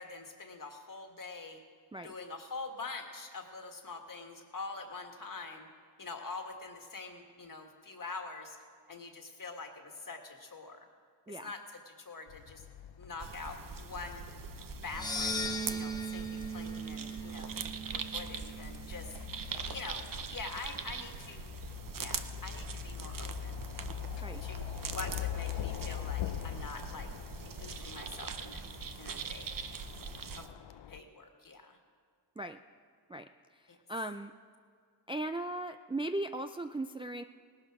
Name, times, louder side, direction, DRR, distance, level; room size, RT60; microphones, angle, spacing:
voice 1, 0.0-1.6 2.0-5.7 6.0-8.6 8.9-10.8 11.3-12.6 13.0-14.2 14.8-17.6 17.9-19.1 19.7-21.5 21.9-23.6 24.4-27.1 27.5-28.7 29.0-29.6 30.3-30.6 30.9-31.8 33.7-33.8, left 3 dB, 45° left, 4 dB, 1.9 m, -45 dB
sound 1, 12.3-31.0, left 11 dB, 70° left, 0.6 m, -43 dB
sound 2, 13.2-30.5, right 6 dB, 50° right, 0.8 m, -43 dB
sound 3, 14.8-19.2, right 1 dB, 10° left, 1.2 m, -38 dB
voice 2, 33.1-33.6 33.9-34.3 35.1-37.2, right 1 dB, 15° right, 7 dB, 0.3 m, -38 dB
18.5 x 12.0 x 4.9 m, 2.1 s
cardioid pair, 80°, 45 cm